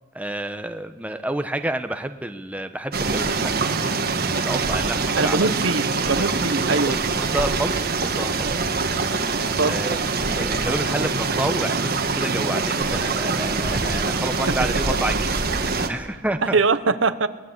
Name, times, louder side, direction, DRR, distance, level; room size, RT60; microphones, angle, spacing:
voice 1, 0.1-3.7 4.4-5.5 6.0-6.3 6.7-7.7 8.0-9.1 9.6-10.0 10.2-15.4 15.7-16.6, right 1 dB, 5° right, 8 dB, 0.9 m, -29 dB
sound 1, 2.9-15.9, right 4 dB, 50° right, 1.7 m, -24 dB
voice 2, 5.2-6.9 9.5-9.8 14.5-14.6 14.9-15.1 16.4-17.3, right 3 dB, 70° right, 12 dB, 1.0 m, -22 dB
22.0 x 20.0 x 8.1 m, 1.2 s
head